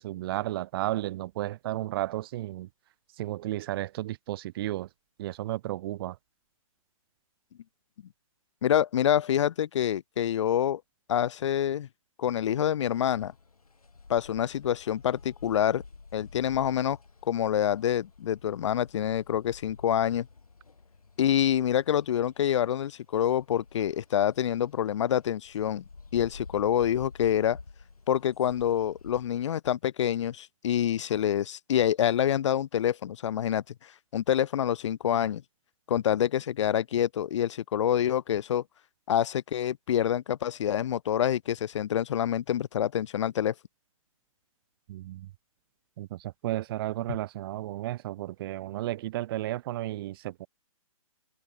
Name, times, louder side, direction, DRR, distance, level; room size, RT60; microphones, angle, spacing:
voice 1, 0.0-2.7 3.2-4.9 5.2-6.1 44.9-45.3 46.0-50.5, right 15 dB, 40° right, 1.0 m, -33 dB
voice 2, 8.6-10.8 11.1-11.9 12.2-13.3 14.1-15.8 16.1-17.0 17.3-20.3 21.2-25.8 26.1-27.6 28.1-33.6 34.1-35.4 35.9-38.6 39.1-43.5, left 10 dB, 55° left, 1.8 m, -26 dB
sound 1, 12.9-29.3, left 4 dB, 85° left, 4.6 m, -50 dB
hypercardioid pair, 135°, 18 cm